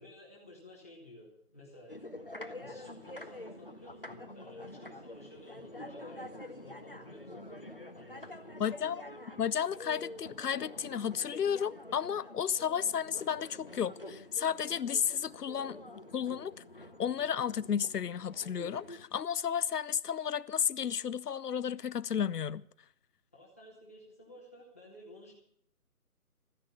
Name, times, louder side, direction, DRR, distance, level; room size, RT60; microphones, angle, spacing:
voice 1, 0.0-2.0 2.6-8.5 23.3-25.3, left 1 dB, 10° left, 1.6 m, -54 dB
sound 1, 1.9-19.1, left 1 dB, 35° left, 0.8 m, -47 dB
voice 2, 8.6-9.0 9.4-15.8 16.1-16.5 17.0-22.6, left 8 dB, 85° left, 0.7 m, -33 dB
13.5 x 10.0 x 8.5 m
figure-of-eight pair, 180°, 46 cm